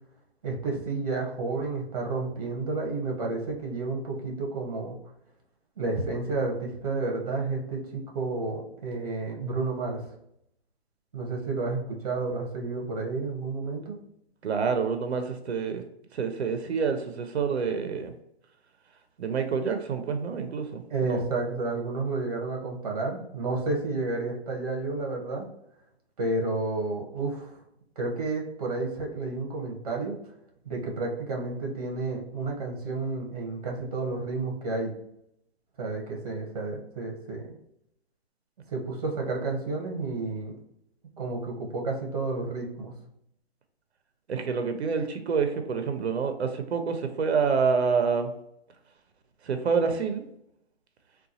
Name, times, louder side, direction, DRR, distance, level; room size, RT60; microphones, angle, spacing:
voice 1, 0.4-5.0 5.8-10.0 11.1-14.0 20.9-25.5 26.2-27.6 28.0-30.2 30.6-34.9 35.8-37.5 38.7-40.6 41.2-42.9, right 3 dB, 35° right, 0 dB, 0.8 m, -31 dB
voice 2, 14.4-15.8 16.1-18.1 19.2-21.2 44.3-48.3 49.4-50.2, right 5 dB, 90° right, 8 dB, 0.6 m, -27 dB
3.8 x 2.3 x 2.7 m, 0.77 s
hypercardioid pair, 170°, 32 cm